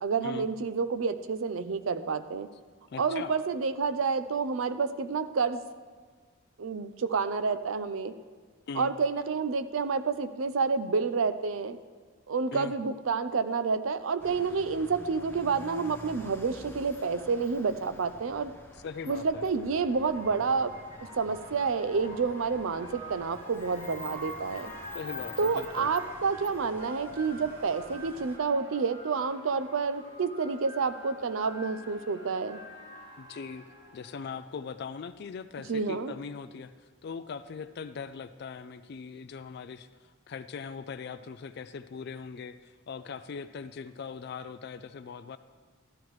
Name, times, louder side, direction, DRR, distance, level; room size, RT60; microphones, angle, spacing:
voice 1, 0.0-2.5 3.0-5.6 6.6-8.1 8.7-11.8 12.3-18.5 19.1-20.7 21.0-24.7 25.4-32.6 35.7-36.1, right 5 dB, 80° right, 12 dB, 0.5 m, -29 dB
voice 2, 2.9-3.3 8.7-8.9 12.5-12.8 18.8-19.4 24.9-25.9 33.2-33.6 33.9-36.7 37.0-45.4, left 5 dB, 55° left, 11 dB, 0.4 m, -40 dB
sound 1, 14.2-28.4, left 2 dB, 10° left, 0.6 m, -48 dB
sound 2, 19.6-34.5, equal, 65° right, 3.0 m, -46 dB
13.0 x 12.0 x 3.2 m, 1.5 s
head